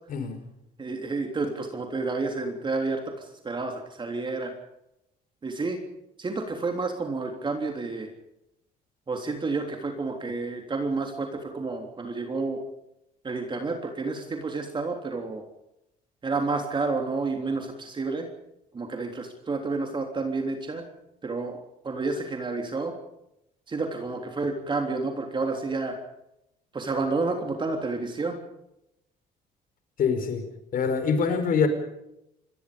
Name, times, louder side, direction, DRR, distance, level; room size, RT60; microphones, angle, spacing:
voice 1, 0.8-3.1 3.4-4.5 5.4-5.8 6.2-8.1 9.1-12.6 13.2-15.4 16.2-18.3 18.7-20.8 21.2-22.9 23.7-26.0 26.7-28.4, right 3 dB, 30° right, 3 dB, 3.4 m, -30 dB
voice 2, 30.0-30.4 30.7-31.7, left 6 dB, 55° left, 8 dB, 5.0 m, -24 dB
27.5 x 21.5 x 5.3 m, 0.84 s
cardioid pair, 110°, 17 cm